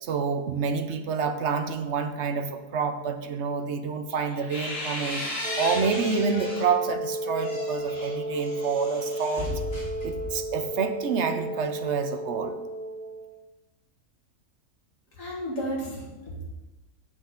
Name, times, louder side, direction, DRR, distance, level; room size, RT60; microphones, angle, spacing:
voice 1, 0.0-5.3 5.6-9.6 10.0-12.6, right 5 dB, 60° right, 8 dB, 0.8 m, -28 dB
sound 1, 4.1-6.8 7.2-10.6, left 1 dB, 40° left, 3.1 m, -35 dB
Wind instrument woodwind instrument, 5.4-13.3, right 1 dB, 75° right, 2.5 m, -33 dB
voice 2, 15.2-16.6, equal, 60° left, -3 dB, 2.5 m, -33 dB
8.1 x 7.7 x 3.8 m, 1.1 s
omnidirectional pair, 1.6 m